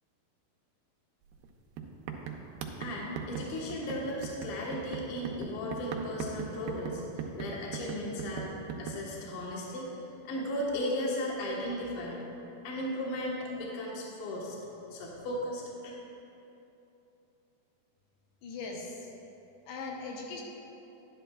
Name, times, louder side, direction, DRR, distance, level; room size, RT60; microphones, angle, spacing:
sound 1, 1.3-1.5 1.8-9.0, right 6 dB, 90° right, 1.9 m, -39 dB
voice 1, 2.8-8.5 8.8-9.9 10.3-12.2 12.6-14.6 14.9-15.9, left 1 dB, 65° left, -3 dB, 2.3 m, -36 dB
voice 2, 18.4-19.1 19.7-20.4, left 3 dB, 80° left, -1 dB, 2.9 m, -39 dB
11.5 x 10.5 x 2.3 m, 2.9 s
omnidirectional pair, 4.7 m